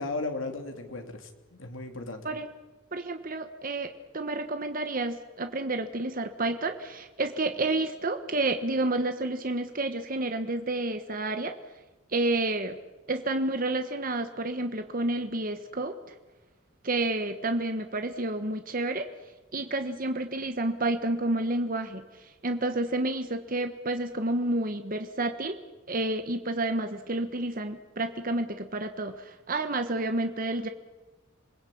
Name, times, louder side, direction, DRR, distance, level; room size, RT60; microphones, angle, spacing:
voice 1, 0.0-2.3, left 2 dB, 75° left, 5 dB, 3.1 m, -35 dB
voice 2, 2.9-11.5 12.1-12.8 13.1-16.0 16.8-19.1 19.5-22.0 22.4-25.6 25.9-30.7, right 2 dB, 45° right, 7 dB, 1.3 m, -30 dB
27.5 x 20.5 x 8.6 m, 1.2 s
head